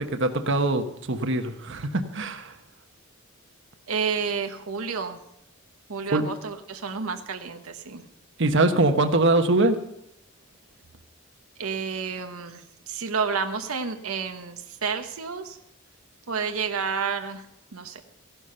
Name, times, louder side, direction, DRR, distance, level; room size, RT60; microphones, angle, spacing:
voice 1, 0.0-2.5 6.1-6.3 8.4-9.8, right 2 dB, 60° right, 7 dB, 1.1 m, -23 dB
voice 2, 3.9-5.2 5.9-8.0 11.6-15.6 16.3-17.5 17.7-18.0, right 5 dB, 90° right, 6 dB, 1.0 m, -30 dB
15.5 x 11.5 x 5.6 m, 0.80 s
head